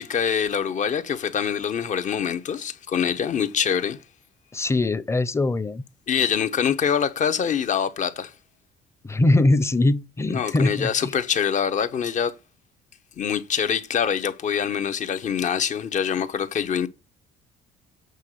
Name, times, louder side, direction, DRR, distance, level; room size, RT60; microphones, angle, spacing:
voice 1, 0.0-4.0 6.1-8.3 10.3-12.3 13.2-16.9, left 7 dB, 45° left, 1.2 m, -24 dB
voice 2, 4.5-5.8 9.0-11.1, left 2 dB, 15° left, 0.8 m, -22 dB
8.2 x 3.9 x 6.7 m
cardioid pair, 110°, 17 cm